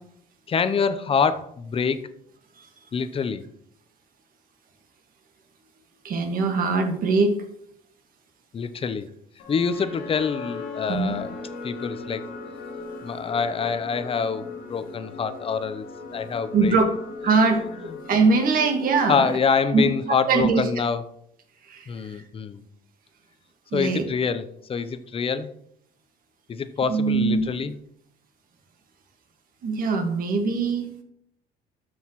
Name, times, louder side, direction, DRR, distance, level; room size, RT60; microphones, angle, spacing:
voice 1, 0.5-2.0 2.9-3.4 8.5-9.1 9.5-11.3 11.6-12.2 13.0-15.8 16.1-16.8 17.3-17.5 19.1-21.0 21.9-22.6 23.7-25.5 26.5-27.8, left 6 dB, 35° left, 12 dB, 0.7 m, -26 dB
voice 2, 6.0-7.4 10.9-11.1 16.5-16.9 17.2-19.3 19.7-19.9 20.3-20.6 21.7-21.9 23.7-24.0 26.9-27.5 29.6-30.9, right 4 dB, 60° right, 4 dB, 1.7 m, -22 dB
sound 1, 9.4-19.6, left 3 dB, 90° left, 2.2 m, -38 dB
13.0 x 6.4 x 3.1 m, 0.71 s
cardioid pair, 110°, 17 cm